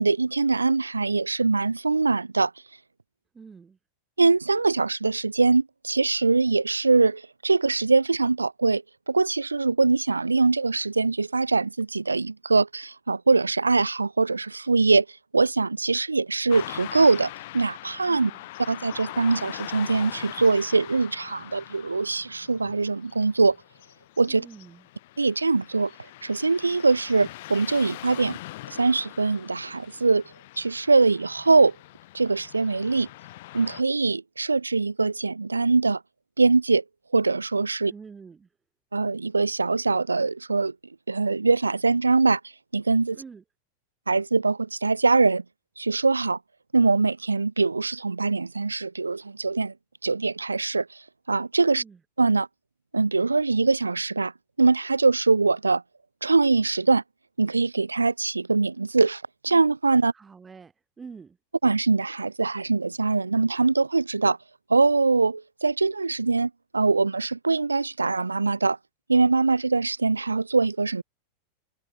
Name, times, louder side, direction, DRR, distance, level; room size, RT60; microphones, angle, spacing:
voice 1, 0.0-2.5 4.2-15.1 15.3-18.3 18.7-23.6 24.2-24.5 25.2-25.9 26.2-28.4 28.7-30.2 30.6-31.8 32.1-33.1 33.5-36.0 36.4-36.8 37.1-37.9 38.9-40.7 41.1-42.4 42.7-43.2 44.1-45.4 45.8-46.4 46.7-49.7 50.0-50.9 51.3-51.8 52.2-52.5 52.9-54.3 54.6-55.8 56.2-57.0 57.4-60.1 61.6-64.4 64.7-68.8 69.1-71.0, right 3 dB, 80° right, 0.7 m, -22 dB
voice 2, 3.3-3.8 18.1-18.4 24.3-24.8 37.9-38.5 43.1-43.4 51.7-52.0 60.1-61.4, right 5 dB, 15° right, 4.3 m, -46 dB
Car passing by / Traffic noise roadway noise, 16.5-33.8, left 18 dB, 50° left, 0.7 m, -42 dB
figure-of-eight pair, 90°, 0 cm